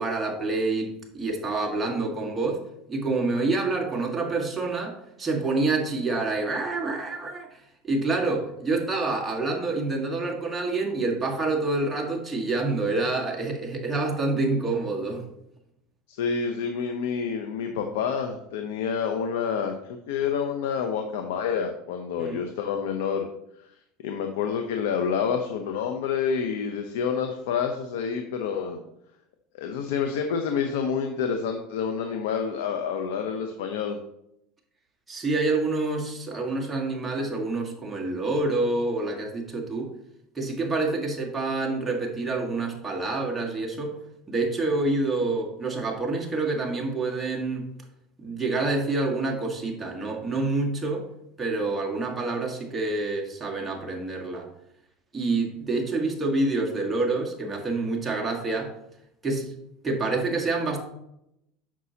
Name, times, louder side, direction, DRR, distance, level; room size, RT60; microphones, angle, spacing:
voice 1, 0.0-2.6 2.9-7.5 7.8-15.2 22.2-22.4 35.1-39.9 40.3-43.9 44.3-47.7 48.2-51.0 51.4-54.5 55.1-58.7 59.2-59.5 59.8-60.8, right 3 dB, 15° right, 0 dB, 1.6 m, -27 dB
voice 2, 16.1-23.3 24.0-28.8 29.5-34.0, left 6 dB, 85° left, 5 dB, 0.7 m, -28 dB
8.4 x 6.1 x 2.8 m, 0.79 s
supercardioid pair, 130°, 0 cm